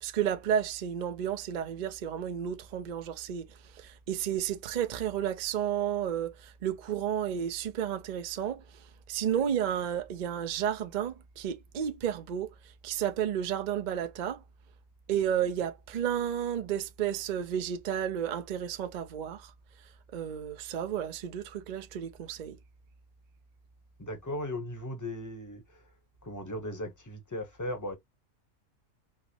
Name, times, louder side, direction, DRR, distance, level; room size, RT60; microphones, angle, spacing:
voice 1, 0.0-3.5 3.8-8.6 9.1-12.5 12.8-14.4 15.1-19.5 20.1-22.6, right 9 dB, 55° right, 0.5 m, -32 dB
voice 2, 24.0-25.8 26.2-27.9, left 1 dB, 15° left, 0.7 m, -37 dB
4.7 x 2.0 x 2.8 m
omnidirectional pair, 1.5 m